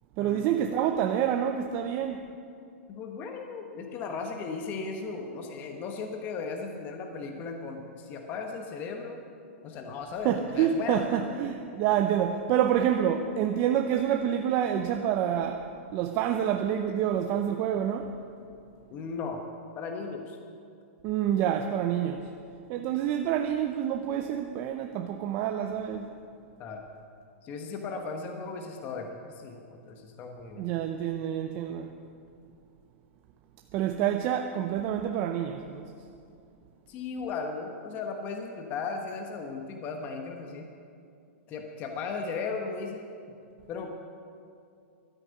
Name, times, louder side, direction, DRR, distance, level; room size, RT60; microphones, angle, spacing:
voice 1, 0.2-2.2 10.2-18.1 21.0-22.3 22.7-26.1 30.6-31.9 33.7-35.9, right 9 dB, 30° right, 5 dB, 0.6 m, -27 dB
voice 2, 2.9-9.2 9.6-11.3 18.9-19.4 19.8-20.4 26.6-26.8 27.4-30.7 36.9-40.7 41.5-43.1 43.7-43.9, left 4 dB, 25° left, 3 dB, 1.1 m, -36 dB
13.0 x 9.2 x 9.6 m, 2.4 s
hypercardioid pair, 165°, 7 cm